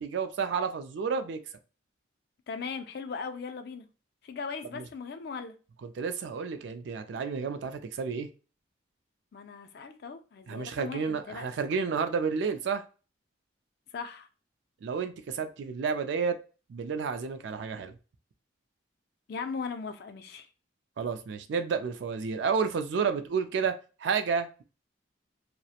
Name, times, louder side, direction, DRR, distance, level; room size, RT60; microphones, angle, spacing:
voice 1, 0.0-1.4 4.7-4.8 5.8-8.3 10.5-12.8 14.8-16.4 16.7-18.0 21.0-23.7 24.0-24.6, right 5 dB, 65° right, 0.3 m, -31 dB
voice 2, 2.5-3.9 4.2-5.5 9.3-11.5 13.9-14.3 19.3-20.5, left 5 dB, 50° left, 0.3 m, -38 dB
2.4 x 2.0 x 2.7 m
head